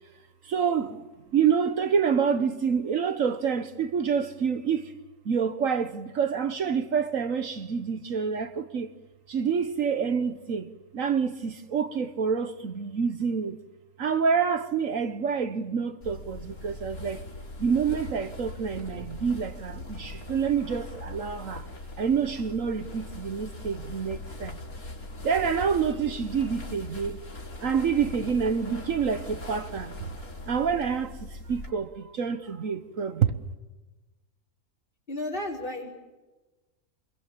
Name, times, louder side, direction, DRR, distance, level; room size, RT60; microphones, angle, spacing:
voice 1, 0.4-1.0 1.3-4.9 5.2-8.9 9.3-10.7 10.9-13.6 14.0-17.2 17.6-21.7 22.0-24.6 25.2-27.2 27.6-29.9 30.5-33.4, right 6 dB, 65° right, 1.4 m, -27 dB
sound 1, 16.0-31.7, left 2 dB, 75° left, 4.2 m, -40 dB
voice 2, 35.1-35.9, left 1 dB, 35° left, 5.1 m, -34 dB
27.5 x 22.0 x 7.3 m
omnidirectional pair, 1.5 m